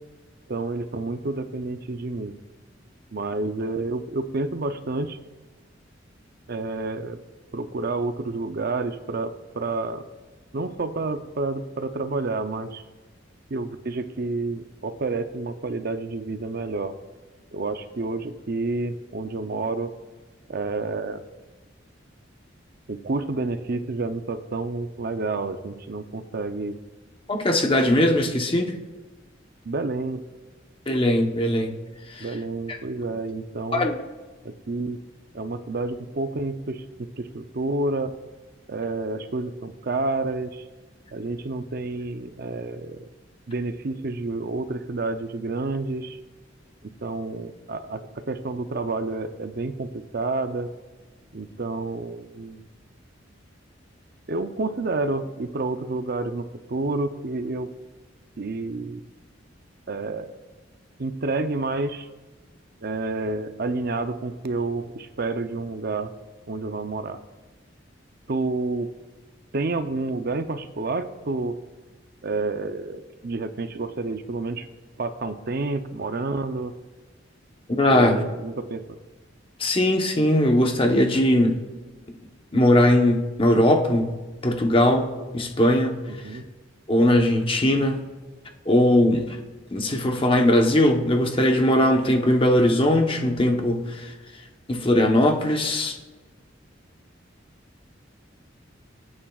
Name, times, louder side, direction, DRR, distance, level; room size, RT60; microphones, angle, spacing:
voice 1, 0.5-2.3 3.1-5.2 6.5-7.2 7.5-10.0 10.5-12.8 13.5-17.0 17.5-19.9 20.5-21.2 22.9-26.8 29.7-30.2 32.2-33.9 34.4-35.0 35.3-38.1 38.7-40.7 41.1-43.1 43.5-46.2 46.8-50.7 51.3-52.6 54.3-57.7 58.4-59.0 59.9-60.3 61.0-62.1 62.8-66.1 66.5-67.2 68.3-68.9 69.5-71.6 72.2-74.7 75.0-76.7 77.9-79.0 86.1-86.5, right 3 dB, 55° right, 9 dB, 0.6 m, -29 dB
voice 2, 27.3-28.8 30.9-31.7 32.1-32.2 33.7-34.0 77.7-78.2 79.6-81.6 82.5-84.1 84.4-86.0 86.9-88.0 88.7-89.2 89.7-94.1 94.7-96.0, left 1 dB, 30° left, 4 dB, 1.0 m, -20 dB
25.5 x 8.7 x 2.4 m, 1.3 s
head